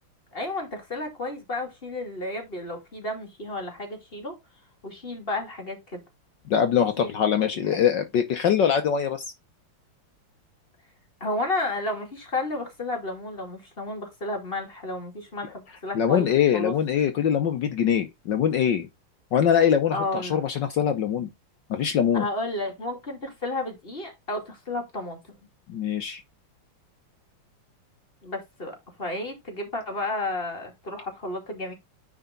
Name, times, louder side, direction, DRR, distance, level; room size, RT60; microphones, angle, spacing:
voice 1, 0.3-4.4 4.8-6.0 7.0-7.1 7.5-7.6 11.2-16.7 19.9-20.4 22.1-25.4 28.2-31.7, left 2 dB, 25° left, 2.7 m, -32 dB
voice 2, 6.5-9.2 15.9-18.9 19.3-21.3 21.7-22.3 25.7-26.2, left 8 dB, 65° left, 1.4 m, -23 dB
9.8 x 4.5 x 3.8 m
omnidirectional pair, 2.4 m